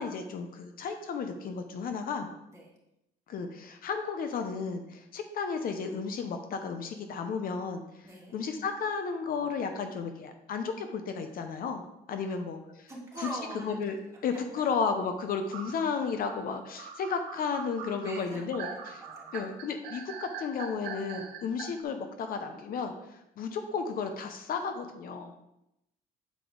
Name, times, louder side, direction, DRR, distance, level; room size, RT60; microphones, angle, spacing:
voice 1, 0.0-2.3 3.3-7.8 8.3-11.8 12.1-12.9 13.2-13.3 13.6-14.0 14.2-19.0 19.3-25.3, left 5 dB, 60° left, 6 dB, 0.8 m, -33 dB
voice 2, 8.0-8.3 12.1-12.3 12.9-13.8 14.3-14.7 17.9-18.5 19.0-19.3, right 1 dB, 15° right, -4 dB, 2.3 m, -43 dB
sound 1, 15.5-21.6, right 6 dB, 90° right, 1.4 m, -42 dB
8.3 x 4.6 x 3.8 m, 0.85 s
cardioid pair, 110°, 17 cm